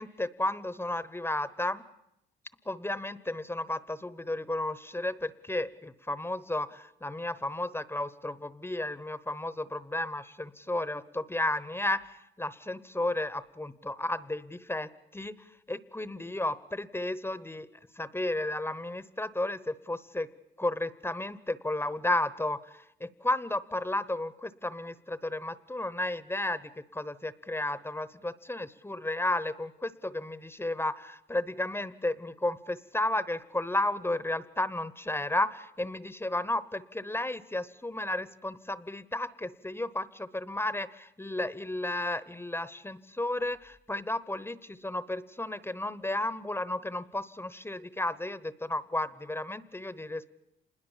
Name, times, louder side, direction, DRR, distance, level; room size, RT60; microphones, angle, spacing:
voice 1, 0.0-1.8 2.7-12.0 12.4-15.3 15.7-17.7 18.0-20.3 20.6-22.6 23.0-50.3, left 1 dB, 10° left, 16 dB, 0.9 m, -33 dB
26.5 x 21.0 x 7.3 m, 0.79 s
cardioid pair, 90°, 20 cm